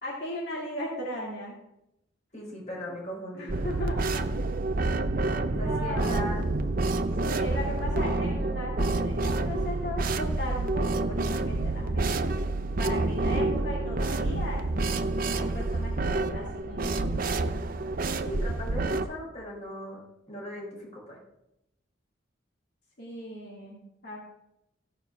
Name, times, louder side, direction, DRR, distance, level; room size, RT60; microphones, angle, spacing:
voice 1, 0.0-1.6 3.3-4.3 5.5-6.3 7.2-14.6 15.3-17.6 23.0-24.2, left 1 dB, 60° left, -4 dB, 2.4 m, -37 dB
voice 2, 2.3-3.5 5.5-6.4 18.2-21.2, equal, 40° left, -2 dB, 4.4 m, -38 dB
sound 1, 3.5-19.1, right 2 dB, 50° right, 0.6 m, -28 dB
16.0 x 5.4 x 6.0 m, 0.87 s
head